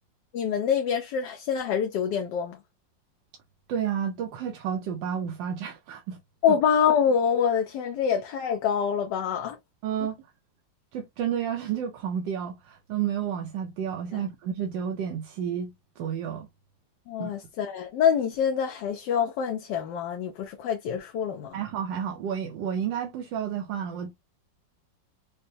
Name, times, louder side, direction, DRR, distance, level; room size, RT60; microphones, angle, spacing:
voice 1, 0.3-2.6 6.4-9.6 14.1-14.2 17.1-21.6, left 7 dB, 75° left, 1.2 m, -26 dB
voice 2, 3.7-6.2 6.5-6.6 9.8-10.2 10.9-16.5 17.2-17.3 21.5-24.1, right 8 dB, 85° right, 1.3 m, -31 dB
5.0 x 2.1 x 2.6 m
omnidirectional pair, 2.0 m